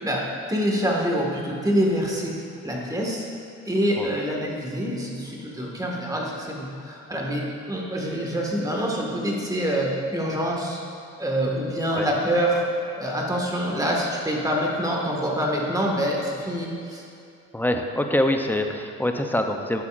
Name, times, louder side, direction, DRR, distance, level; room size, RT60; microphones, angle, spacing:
voice 1, 0.0-2.3 2.6-3.2 3.7-10.8 11.2-12.6 13.0-17.0, equal, 10° right, -2 dB, 1.8 m, -26 dB
voice 2, 4.0-4.4 11.9-12.1 17.5-19.8, left 1 dB, 5° left, 4 dB, 0.6 m, -25 dB
12.0 x 8.1 x 2.6 m, 2.5 s
cardioid pair, 90°, 30 cm